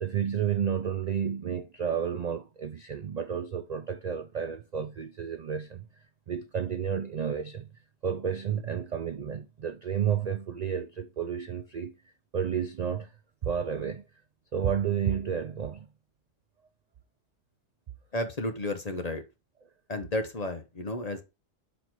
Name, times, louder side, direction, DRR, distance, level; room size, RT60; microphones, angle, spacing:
voice 1, 0.0-7.7 8.0-11.9 12.3-13.1 13.4-14.0 14.5-15.9, right 8 dB, 70° right, 0.4 m, -31 dB
voice 2, 18.1-19.2 19.9-21.2, left 1 dB, 35° left, 0.8 m, -32 dB
5.9 x 4.2 x 4.5 m
omnidirectional pair, 1.4 m